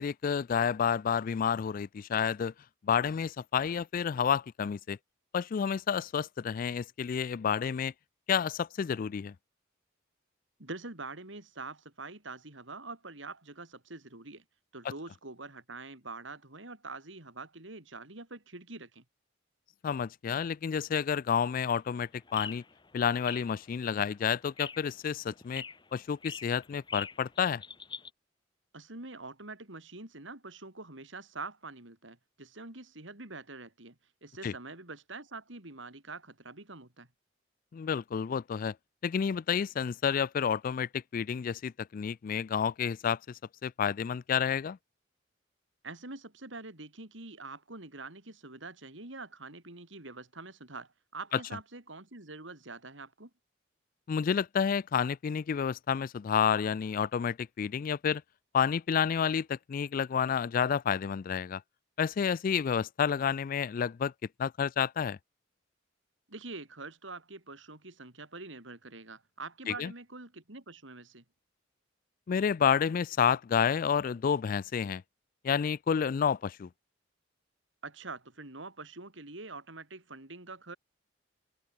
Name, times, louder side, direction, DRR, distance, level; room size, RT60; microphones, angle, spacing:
voice 1, 0.0-2.5 2.8-5.0 5.3-7.9 8.3-9.3 19.8-22.6 22.9-25.6 25.9-27.6 34.4-34.5 37.7-38.8 39.0-44.8 54.1-58.2 58.5-61.6 62.0-64.1 64.4-65.2 69.7-69.9 72.3-75.0 75.4-76.7, left 7 dB, 45° left, 0.3 m, -30 dB
voice 2, 10.6-14.4 14.7-19.0 28.7-37.1 45.8-53.3 66.3-71.2 77.8-80.8, right 3 dB, 70° right, 3.8 m, -45 dB
sound 1, 21.8-28.1, left 6 dB, 25° left, 1.4 m, -44 dB
head